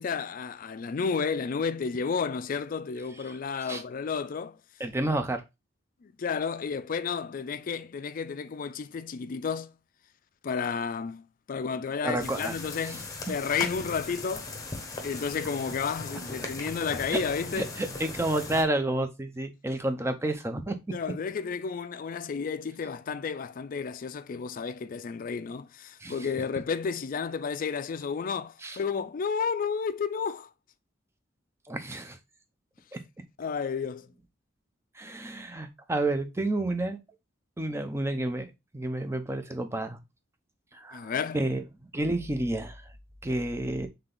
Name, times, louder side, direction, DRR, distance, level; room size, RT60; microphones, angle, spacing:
voice 1, 0.0-4.6 6.0-9.7 10.4-14.5 15.0-17.7 20.9-30.5 33.4-34.1 40.9-41.4, left 5 dB, 50° left, 0.4 m, -32 dB
voice 2, 4.8-5.4 12.0-12.5 12.9-13.0 17.1-17.2 17.6-20.7 26.0-26.2 28.6-28.8 31.7-32.2 32.9-33.0 35.0-37.0 37.6-40.0 40.7-41.6 41.9-42.8 43.2-43.9, right 1 dB, 15° right, 0.6 m, -30 dB
sound 1, 12.2-18.6, left 3 dB, 20° left, 1.0 m, -39 dB
3.8 x 3.3 x 3.7 m
head